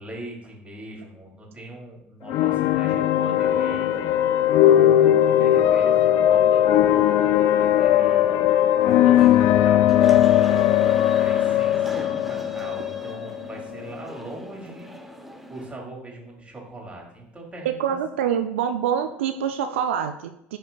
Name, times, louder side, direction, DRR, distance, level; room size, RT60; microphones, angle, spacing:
voice 1, 0.0-7.0 7.6-8.7 9.0-10.8 11.2-14.9 15.5-18.0, right 1 dB, 20° right, -2 dB, 2.5 m, -40 dB
sound 1, 2.3-13.9, left 11 dB, 60° left, 0.3 m, -19 dB
sound 2, 8.8-15.7, right 1 dB, 5° right, 0.7 m, -40 dB
voice 2, 17.8-20.6, right 8 dB, 80° right, 8 dB, 0.3 m, -25 dB
11.0 x 4.3 x 2.2 m, 0.79 s
hypercardioid pair, 75°, 6 cm